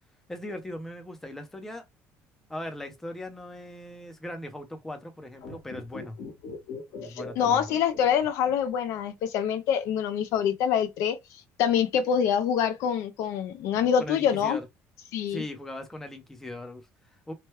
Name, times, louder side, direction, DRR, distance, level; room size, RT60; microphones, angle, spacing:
voice 1, 0.3-1.8 2.5-6.2 7.0-7.7 13.7-14.7 15.3-17.3, left 1 dB, 5° left, 0.6 m, -39 dB
sound 1, 5.3-8.8 9.0-9.1, left 4 dB, 85° left, 1.3 m, -41 dB
voice 2, 7.4-11.2 11.6-14.6 15.1-15.4, left 8 dB, 70° left, 0.5 m, -25 dB
3.0 x 2.2 x 3.1 m
cardioid pair, 165°, 5 cm